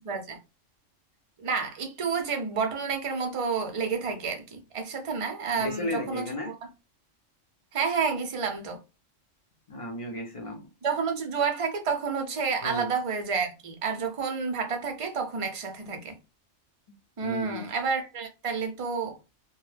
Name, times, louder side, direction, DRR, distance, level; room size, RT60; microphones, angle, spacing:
voice 1, 0.1-0.4 1.4-6.5 7.7-8.8 10.8-16.1 17.2-19.2, right 5 dB, 45° right, 0.4 m, -30 dB
voice 2, 5.6-6.5 9.7-10.7 12.6-12.9 16.9-17.0 17.2-17.7, left 1 dB, 45° left, 0.4 m, -34 dB
2.2 x 2.1 x 3.2 m
omnidirectional pair, 1.3 m